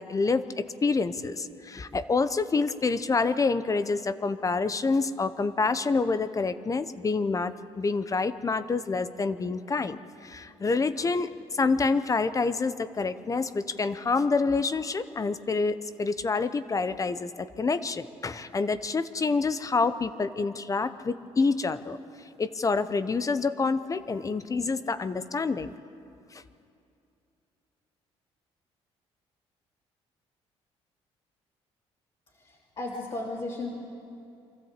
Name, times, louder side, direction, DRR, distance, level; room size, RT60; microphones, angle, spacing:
voice 1, 0.0-22.0 22.4-25.7 26.3-26.4, left 4 dB, 30° left, 13 dB, 0.7 m, -27 dB
voice 2, 32.3-33.8, left 2 dB, 45° left, -4 dB, 3.1 m, -35 dB
24.5 x 13.5 x 8.2 m, 2.6 s
cardioid pair, 90°, 12 cm